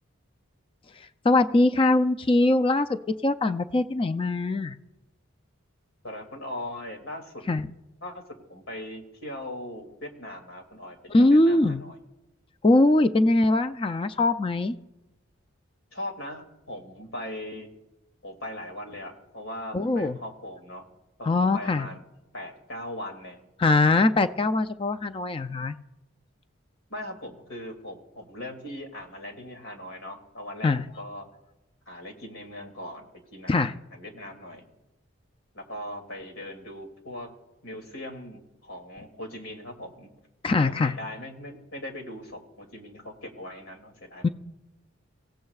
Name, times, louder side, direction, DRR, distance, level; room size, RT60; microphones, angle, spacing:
voice 1, 1.2-4.8 7.5-7.7 11.1-11.8 12.6-14.8 19.7-20.2 21.2-21.9 23.6-25.8 30.6-30.8 33.5-33.7 40.4-40.9 44.2-44.3, left 2 dB, 25° left, 11 dB, 0.4 m, -22 dB
voice 2, 6.0-7.4 8.0-8.2 8.5-12.0 15.9-17.7 18.2-20.9 21.2-22.0 22.3-23.4 26.9-31.3 31.9-34.7 35.5-37.3 37.6-40.1 40.6-44.3, left 1 dB, 80° left, 3 dB, 2.5 m, -39 dB
25.5 x 16.0 x 2.4 m, 1.0 s
head